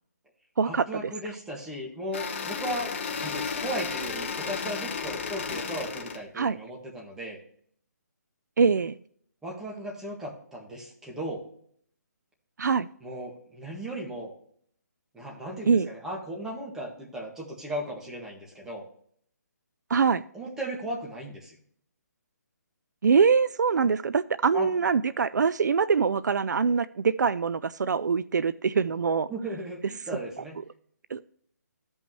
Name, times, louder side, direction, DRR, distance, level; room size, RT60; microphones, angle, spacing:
voice 1, 0.6-7.4 9.4-11.4 13.0-14.3 15.1-18.9 20.3-21.6 24.5-24.7 29.3-30.6, right 1 dB, 5° right, -3 dB, 1.6 m, -36 dB
sound 1, 2.1-6.2, left 6 dB, 40° left, 1.1 m, -33 dB
voice 2, 8.6-9.0 12.6-12.9 15.7-15.9 19.9-20.2 23.0-29.3 31.1-31.2, right 5 dB, 80° right, 17 dB, 0.4 m, -23 dB
14.0 x 5.4 x 3.0 m, 0.62 s
hypercardioid pair, 160°, 10 cm